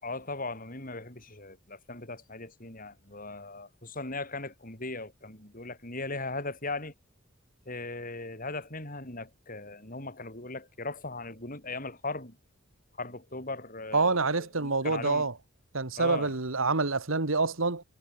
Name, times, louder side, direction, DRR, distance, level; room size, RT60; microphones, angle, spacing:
voice 1, 0.0-6.9 7.7-12.4 13.0-15.3 16.0-16.4, left 3 dB, 40° left, 7.8 m, -38 dB
voice 2, 13.9-15.3 15.7-17.8, right 3 dB, 75° right, 1.8 m, -27 dB
head